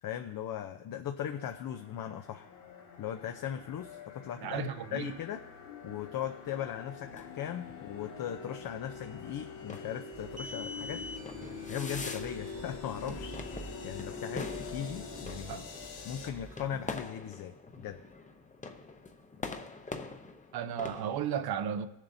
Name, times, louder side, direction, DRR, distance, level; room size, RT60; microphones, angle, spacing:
voice 1, 0.0-2.5 3.0-5.4 5.8-11.0 11.4-15.6 16.0-18.0, left 10 dB, 55° left, 0.7 m, -39 dB
sound 1, 1.3-16.3, left 5 dB, 85° left, 1.7 m, -45 dB
voice 2, 4.4-5.2 15.5-15.6 20.5-21.9, right 8 dB, 60° right, 0.8 m, -34 dB
sound 2, 6.9-21.3, left 3 dB, 20° left, 0.7 m, -46 dB
sound 3, 10.1-17.0, right 1 dB, 20° right, 0.8 m, -46 dB
20.5 x 7.4 x 2.7 m
cardioid pair, 100°, 42 cm